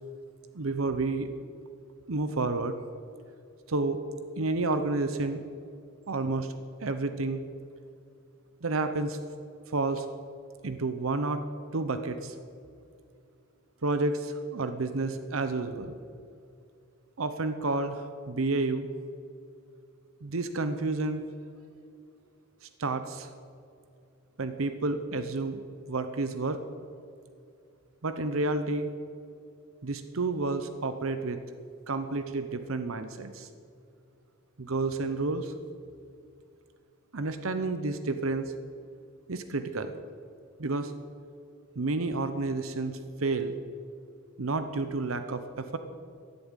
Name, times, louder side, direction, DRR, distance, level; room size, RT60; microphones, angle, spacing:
voice 1, 0.5-1.3 2.1-2.8 3.7-4.0 4.4-5.5 6.1-6.5 6.8-7.4 8.6-9.2 9.7-10.1 10.6-11.4 11.7-12.4 13.8-16.0 17.2-18.9 20.2-21.2 22.6-23.3 24.4-25.6 25.9-26.6 28.0-28.9 29.8-31.4 31.9-33.5 34.6-35.5 37.1-38.5 39.3-39.9 40.6-40.9 41.8-43.6 44.4-45.8, right 3 dB, 90° right, 9 dB, 0.8 m, -30 dB
12.5 x 11.0 x 9.0 m, 2.5 s
head